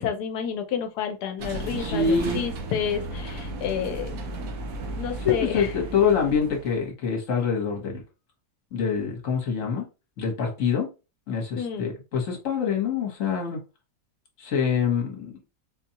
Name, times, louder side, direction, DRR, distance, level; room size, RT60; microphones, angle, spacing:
voice 1, 0.0-4.2 5.0-5.7 11.6-11.9, left 7 dB, 85° left, 1.2 m, -30 dB
sound 1, 1.4-6.9, right 2 dB, 65° right, 1.1 m, -34 dB
voice 2, 1.8-2.4 5.2-8.0 8.7-9.9 10.2-10.9 11.3-13.6 14.4-15.4, left 6 dB, 55° left, 1.4 m, -25 dB
4.1 x 2.2 x 2.8 m
omnidirectional pair, 1.7 m